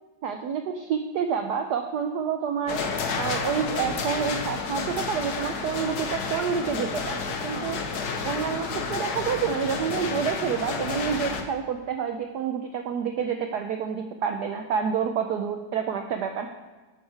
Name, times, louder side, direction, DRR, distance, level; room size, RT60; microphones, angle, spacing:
voice 1, 0.2-7.8 8.2-16.5, right 7 dB, 70° right, 6 dB, 1.0 m, -28 dB
sound 1, 2.7-11.4, left 4 dB, 55° left, 1.3 m, -31 dB
11.5 x 9.0 x 3.3 m, 1.3 s
omnidirectional pair, 2.3 m